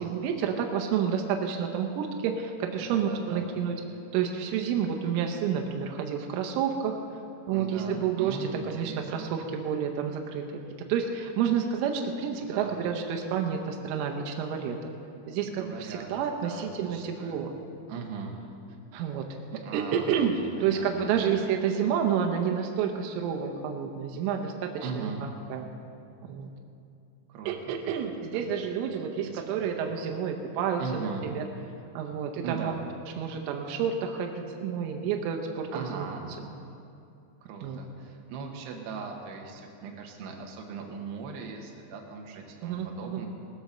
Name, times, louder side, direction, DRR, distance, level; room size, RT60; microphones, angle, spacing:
voice 1, 0.0-3.8 4.1-7.0 7.5-10.4 10.9-14.9 15.3-17.5 18.9-19.3 19.5-20.4 20.6-25.7 26.2-26.5 27.5-31.5 32.0-32.7 33.2-36.1 36.4-36.5 37.6-37.8 42.6-43.3, right 7 dB, 85° right, 3 dB, 3.4 m, -29 dB
voice 2, 2.8-3.5 7.5-9.3 12.4-12.8 15.4-16.1 16.4-17.4 17.9-18.4 19.6-21.1 24.8-25.2 27.3-27.5 27.8-27.9 28.3-28.5 29.2-29.6 30.8-31.3 32.4-32.8 35.7-36.3 37.4-43.3, right 5 dB, 70° right, 1 dB, 3.0 m, -39 dB
19.0 x 7.9 x 6.6 m, 2.6 s
omnidirectional pair, 5.6 m